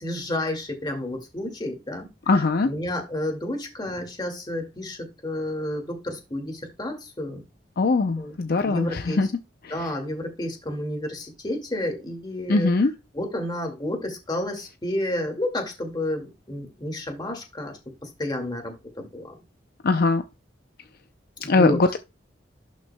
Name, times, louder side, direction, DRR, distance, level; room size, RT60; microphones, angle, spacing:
voice 1, 0.0-2.1 2.3-7.4 8.2-8.4 8.6-9.2 9.7-12.7 13.1-19.4 21.4-21.8, left 1 dB, 25° left, 2.1 m, -31 dB
voice 2, 2.3-2.7 7.8-9.3 9.6-9.9 12.5-12.9 19.8-20.2 21.4-22.0, left 3 dB, 55° left, 0.5 m, -21 dB
11.5 x 6.2 x 2.2 m
head